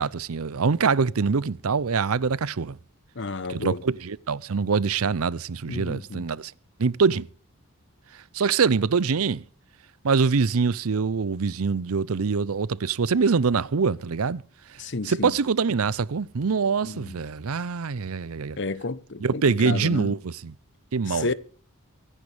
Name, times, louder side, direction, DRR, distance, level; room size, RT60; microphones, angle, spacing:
voice 1, 0.0-2.8 3.5-6.5 6.8-7.3 8.3-9.4 10.0-14.4 15.0-18.6 19.2-20.5 20.9-21.3, right 5 dB, 75° right, 0.6 m, -24 dB
voice 2, 3.2-3.8 5.7-6.2 14.8-15.3 16.8-17.2 18.6-20.1 21.1-21.3, left 3 dB, 55° left, 0.9 m, -31 dB
24.0 x 10.0 x 3.4 m
head